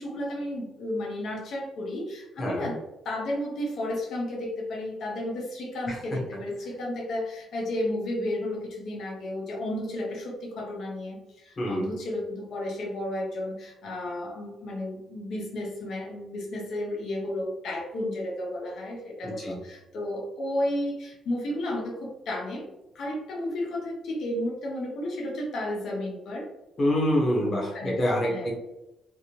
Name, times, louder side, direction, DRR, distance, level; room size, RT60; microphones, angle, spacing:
voice 1, 0.0-2.8 3.0-22.7 22.9-26.5 27.4-28.5, left 1 dB, 65° left, -2 dB, 0.9 m, -33 dB
voice 2, 11.6-11.9 19.4-19.6 26.8-28.5, equal, 40° left, -3 dB, 1.2 m, -26 dB
3.4 x 2.1 x 2.9 m, 0.93 s
cardioid pair, 90°, 0 cm